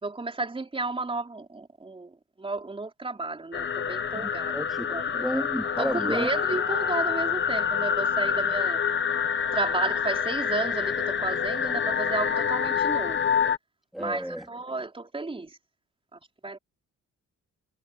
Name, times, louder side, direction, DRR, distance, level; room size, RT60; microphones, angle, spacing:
voice 1, 0.0-4.5 4.9-5.5 5.8-8.8 9.5-13.2 14.0-15.6 16.1-16.6, right 3 dB, 20° right, 4.5 m, -32 dB
sound 1, 3.5-13.6, left 7 dB, 40° left, 1.2 m, -27 dB
voice 2, 4.1-6.3 13.9-14.4, equal, ahead, 3.5 m, -32 dB
cardioid pair, 130°, 30 cm